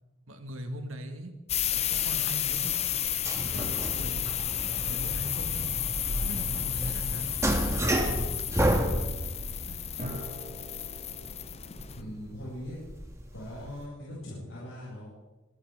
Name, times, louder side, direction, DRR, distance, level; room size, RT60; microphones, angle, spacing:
voice 1, 0.3-1.3 1.9-2.8 3.4-4.4 4.9-5.7 6.2-8.4 9.7-9.8, right 1 dB, 85° right, 4 dB, 2.3 m, -41 dB
sound 1, 1.5-12.0, left 11 dB, 30° left, 0.6 m, -32 dB
sound 2, 1.7-13.8, right 1 dB, 15° right, 1.7 m, -32 dB
sound 3, 3.5-6.4 10.0-13.3, equal, 45° right, 4.6 m, -45 dB
voice 2, 11.9-12.8 13.3-15.1, left 1 dB, 85° left, -8 dB, 7.7 m, -40 dB
26.0 x 14.0 x 3.9 m, 1.1 s
head